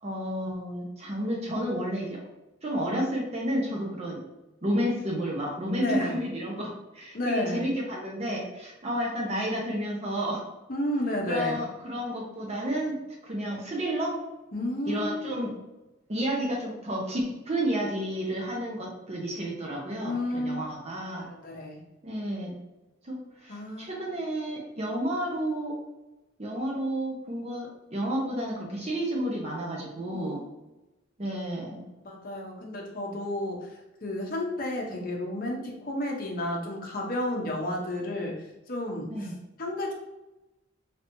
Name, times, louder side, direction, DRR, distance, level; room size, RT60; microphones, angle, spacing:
voice 1, 0.0-2.2 2.6-4.2 4.6-10.4 11.3-14.1 14.9-15.5 16.1-21.3 22.0-22.6 23.0-25.7 26.4-30.4 31.2-31.8 39.1-39.3, equal, 30° right, -2 dB, 0.6 m, -31 dB
voice 2, 5.8-6.2 7.1-7.6 10.7-11.6 14.5-15.5 20.0-20.7 21.2-21.8 23.5-24.0 30.1-30.4 32.0-33.7 34.0-39.3 39.6-39.9, left 1 dB, 45° left, 0 dB, 0.7 m, -32 dB
3.3 x 2.9 x 2.6 m, 1.0 s
head